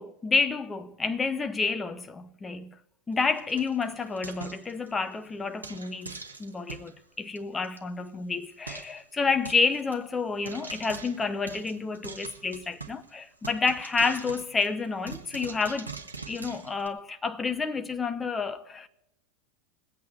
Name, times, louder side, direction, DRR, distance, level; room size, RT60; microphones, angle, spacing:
voice 1, 0.0-2.7 3.1-15.9 16.3-18.9, left 4 dB, 15° left, 0.8 m, -29 dB
Frying (food), 3.1-5.1 5.6-6.9 7.4-7.5 7.6-7.8 8.1-8.2 8.7-9.0 9.5-10.0 10.5-13.1 13.4-16.9, right 4 dB, 85° right, 1.3 m, -43 dB
22.0 x 8.5 x 4.3 m
figure-of-eight pair, 85°, 0 cm